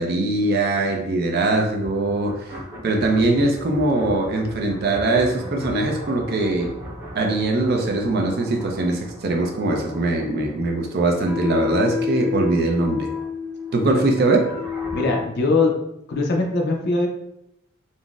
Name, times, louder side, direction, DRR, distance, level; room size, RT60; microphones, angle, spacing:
voice 1, 0.0-2.5 2.8-6.7 7.1-13.1 13.7-14.4, right 2 dB, 50° right, 2 dB, 0.4 m, -21 dB
sound 1, 1.7-15.2, left 5 dB, 15° right, 0.9 m, -33 dB
voice 2, 14.9-15.8 16.1-17.1, left 3 dB, 50° left, 1 dB, 0.5 m, -21 dB
3.8 x 2.0 x 2.3 m, 0.81 s
head